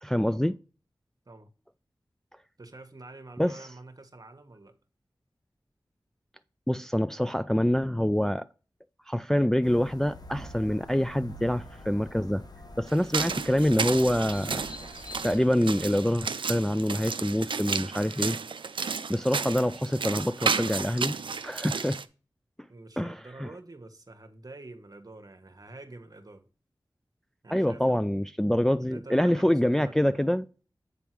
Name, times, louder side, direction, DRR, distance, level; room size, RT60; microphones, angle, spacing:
voice 1, 0.0-0.5 3.4-3.6 6.7-8.5 9.1-12.4 12.8-14.6 15.2-18.4 19.1-21.2 21.4-22.0 23.0-23.5 27.5-30.5, equal, 5° left, 0.3 m, -26 dB
voice 2, 2.6-4.7 22.7-26.5 27.4-28.1 28.8-30.2, right 2 dB, 45° right, 1.2 m, -47 dB
sound 1, 9.6-15.4, left 1 dB, 50° left, 0.9 m, -46 dB
sound 2, 12.9-22.0, right 5 dB, 80° right, 0.4 m, -32 dB
8.2 x 3.5 x 4.6 m
cardioid pair, 40°, 8 cm